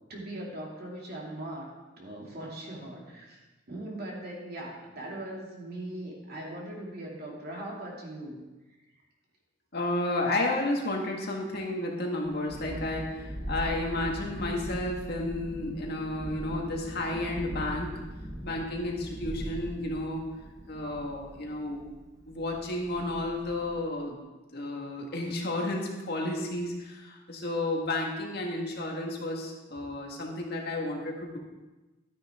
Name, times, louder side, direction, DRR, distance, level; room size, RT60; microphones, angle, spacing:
voice 1, 0.1-1.7 2.0-8.4, right 1 dB, 55° right, -3 dB, 2.7 m, -40 dB
voice 2, 9.7-17.9 18.4-20.3 20.7-21.8 22.3-24.2 24.5-31.4, left 2 dB, 55° left, 0 dB, 1.9 m, -32 dB
Thunderstorm, 12.2-23.8, equal, 20° right, 1.1 m, -40 dB
12.5 x 9.4 x 3.7 m, 1.1 s
head